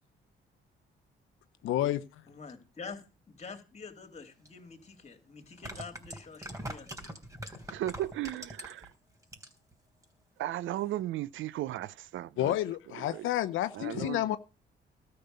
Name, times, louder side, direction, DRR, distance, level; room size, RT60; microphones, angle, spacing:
voice 1, 1.6-2.1 12.4-14.4, left 13 dB, 85° left, 0.7 m, -30 dB
voice 2, 2.3-6.9, left 5 dB, 35° left, 3.3 m, -47 dB
sound 1, 4.5-4.6 5.4-8.9 9.2-9.7 10.0-10.1, right 1 dB, 15° right, 3.4 m, -42 dB
voice 3, 7.7-8.9 10.4-12.5 12.9-13.3 13.7-14.4, right 14 dB, 80° right, 0.6 m, -36 dB
13.0 x 6.7 x 6.8 m
cardioid pair, 90°, 20 cm